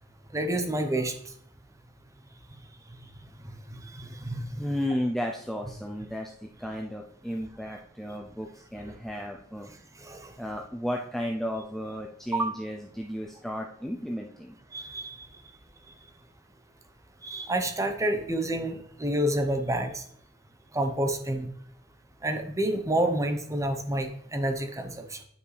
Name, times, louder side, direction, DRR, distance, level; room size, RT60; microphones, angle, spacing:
voice 1, 0.3-1.2 3.9-4.6 8.8-8.9 10.0-10.3 12.3-12.6 14.7-15.3 17.2-20.0 20.7-21.5 22.2-25.2, right 1 dB, 15° right, 6 dB, 0.8 m, -29 dB
voice 2, 4.6-9.7 10.4-14.6, equal, ahead, 1 dB, 0.4 m, -33 dB
9.3 x 5.3 x 3.3 m, 0.66 s
head